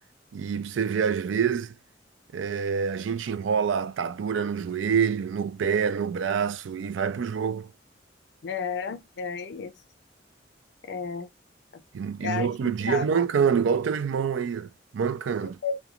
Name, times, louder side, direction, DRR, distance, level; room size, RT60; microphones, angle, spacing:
voice 1, 0.3-1.8 2.3-7.7 11.9-15.6, right 6 dB, 85° right, 0.4 m, -26 dB
voice 2, 8.4-9.7 10.8-11.3 12.2-12.5 12.9-13.1 15.4-15.8, left 6 dB, 60° left, 0.4 m, -32 dB
2.4 x 2.2 x 2.8 m
head